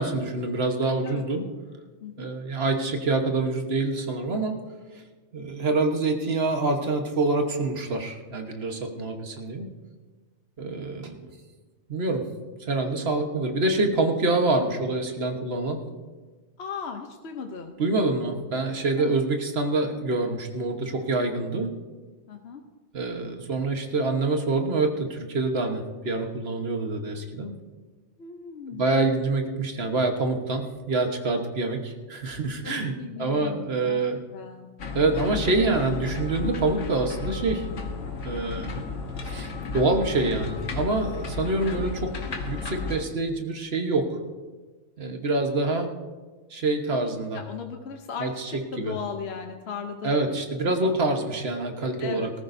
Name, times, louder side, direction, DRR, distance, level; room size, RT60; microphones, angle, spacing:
voice 1, 0.0-1.4 2.2-4.6 5.3-9.7 10.6-11.3 11.9-12.2 12.7-15.8 17.8-21.7 22.9-27.5 28.8-32.9 33.2-34.2 34.9-37.7 38.2-38.8 39.2-44.2 45.0-45.9 46.5-47.4 48.2-48.5 48.8-49.0 50.0-52.3, right 2 dB, 55° right, 4 dB, 1.5 m, -26 dB
voice 2, 16.6-17.7 19.0-19.2 22.3-22.6 28.2-28.9 32.6-34.0 34.3-34.7 47.3-50.4 50.7-51.0 52.0-52.3, left 6 dB, 60° left, 4 dB, 1.1 m, -37 dB
sound 1, 34.8-43.0, left 4 dB, 90° left, 1.5 m, -33 dB
18.5 x 14.0 x 2.7 m, 1.3 s
omnidirectional pair, 1.2 m